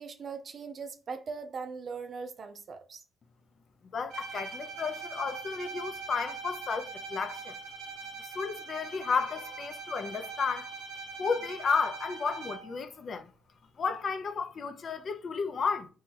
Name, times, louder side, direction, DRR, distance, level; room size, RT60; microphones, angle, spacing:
voice 1, 0.0-3.0, right 5 dB, 50° right, 0.4 m, -40 dB
voice 2, 3.9-7.6 8.3-10.7 11.2-13.3 13.8-15.9, left 5 dB, 50° left, 0.4 m, -32 dB
Bowed string instrument, 4.1-12.9, right 4 dB, 90° right, 0.8 m, -42 dB
3.0 x 2.2 x 3.2 m
cardioid pair, 75°, 0 cm